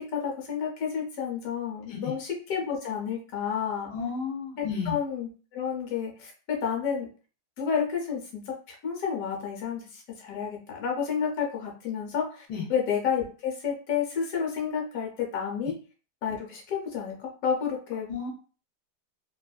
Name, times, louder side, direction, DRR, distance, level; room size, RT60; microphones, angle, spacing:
voice 1, 0.0-3.9 4.6-7.1 7.6-15.7 16.2-18.1, left 7 dB, 65° left, 1 dB, 1.1 m, -30 dB
voice 2, 3.9-5.0 12.5-12.7 18.1-18.3, left 5 dB, 85° left, 1 dB, 1.3 m, -32 dB
2.9 x 2.5 x 2.3 m, 0.38 s
omnidirectional pair, 1.7 m